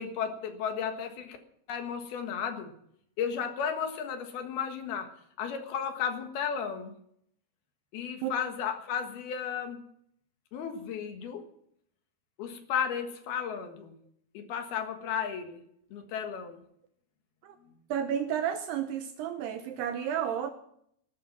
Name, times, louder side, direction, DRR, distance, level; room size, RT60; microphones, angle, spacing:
voice 1, 0.0-1.4 1.7-2.7 3.2-5.1 5.4-6.9 7.9-9.8 10.5-11.5 12.4-13.9 14.3-15.6 15.9-16.6, left 7 dB, 65° left, 6 dB, 3.1 m, -34 dB
voice 2, 17.9-20.5, right 9 dB, 75° right, 8 dB, 2.6 m, -31 dB
16.5 x 13.0 x 6.0 m, 0.69 s
omnidirectional pair, 5.4 m